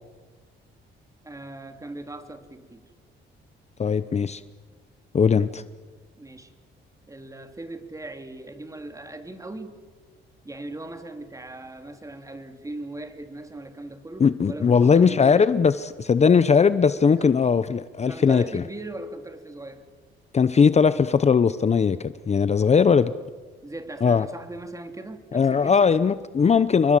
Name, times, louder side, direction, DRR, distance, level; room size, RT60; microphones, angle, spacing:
voice 1, 1.2-2.8 6.2-6.5 7.1-9.7 10.4-15.5 17.2-17.4 18.1-19.8 22.6-23.1 23.6-25.8, right 2 dB, 15° right, 7 dB, 3.1 m, -39 dB
voice 2, 3.8-4.4 5.1-5.6 14.2-18.6 20.3-23.1 24.0-24.3 25.3-27.0, left 6 dB, 35° left, 14 dB, 0.8 m, -19 dB
29.5 x 23.5 x 7.6 m, 1.4 s
cardioid pair, 90°, 20 cm